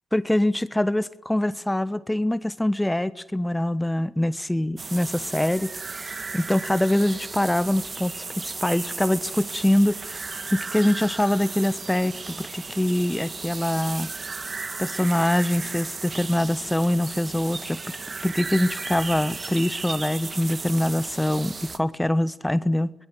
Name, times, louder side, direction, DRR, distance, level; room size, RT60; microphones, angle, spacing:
voice 1, 0.1-6.1 6.3-10.2 10.5-14.1 14.8-18.0 18.2-22.9, left 1 dB, 10° left, 15 dB, 1.2 m, -24 dB
sound 1, 4.8-21.8, right 4 dB, 40° right, 1.9 m, -35 dB
25.0 x 21.0 x 7.9 m, 0.83 s
supercardioid pair, 55°, 0 cm